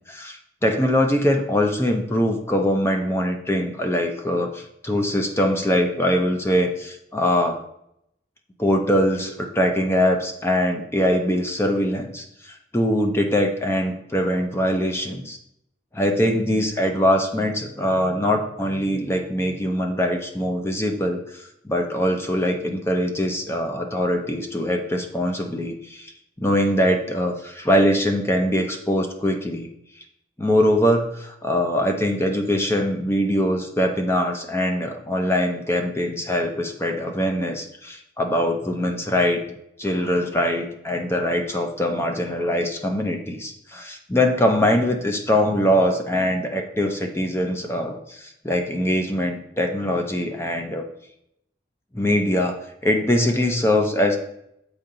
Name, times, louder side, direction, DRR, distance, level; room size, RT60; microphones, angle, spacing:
voice 1, 0.1-7.6 8.6-15.4 15.9-26.1 26.4-29.7 30.4-39.4 39.8-50.8 51.9-54.2, equal, 15° left, 4 dB, 0.7 m, -22 dB
7.0 x 4.7 x 3.9 m, 0.76 s
head